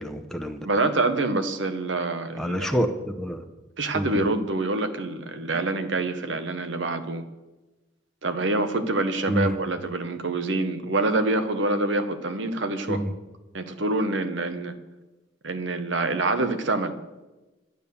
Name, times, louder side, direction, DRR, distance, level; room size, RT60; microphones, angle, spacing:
voice 1, 0.0-0.7 2.4-3.4 3.9-4.1 9.3-9.5 12.9-13.1, equal, ahead, 5 dB, 0.8 m, -27 dB
voice 2, 0.6-2.7 3.8-7.2 8.2-13.0 13.5-14.7 15.4-16.9, right 2 dB, 70° right, 9 dB, 1.1 m, -26 dB
11.0 x 9.0 x 7.0 m, 1.1 s
head